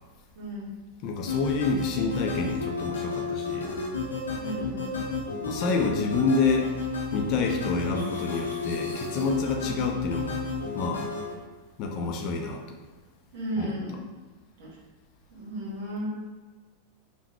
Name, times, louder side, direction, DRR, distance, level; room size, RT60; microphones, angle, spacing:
voice 1, 0.3-0.7 4.4-4.9 9.6-9.8 13.3-14.0 14.6-14.8 15.3-16.1, right 1 dB, 55° right, -3 dB, 1.1 m, -34 dB
voice 2, 1.0-3.7 5.5-6.7 7.1-10.4 10.7-11.0 11.8-12.8 13.6-13.7, left 4 dB, 40° left, 2 dB, 0.5 m, -28 dB
sound 1, 1.3-11.3, left 4 dB, 70° left, 0.7 m, -32 dB
5.6 x 2.2 x 2.9 m, 1.3 s
figure-of-eight pair, 90°, 0 cm